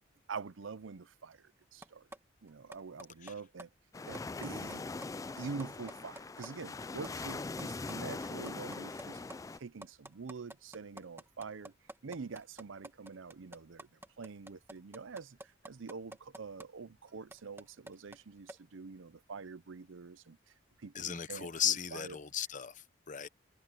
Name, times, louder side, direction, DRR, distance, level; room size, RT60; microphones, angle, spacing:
voice 1, 0.3-2.1 2.4-3.7 4.1-4.8 5.4-11.7 12.0-22.2, right 4 dB, 90° right, 0.6 m, -46 dB
sound 1, 1.8-2.2 2.5-3.3 3.6-3.7 4.0-4.8 5.0-5.1 5.4-6.5 6.8-6.9 7.0-7.9 8.3-16.7 17.1-18.2 18.5-18.6, right 2 dB, 15° right, 1.5 m, -48 dB
sound 2, 3.9-9.6, left 3 dB, 15° left, 0.3 m, -41 dB
voice 2, 20.9-23.3, left 9 dB, 40° left, 0.9 m, -36 dB
head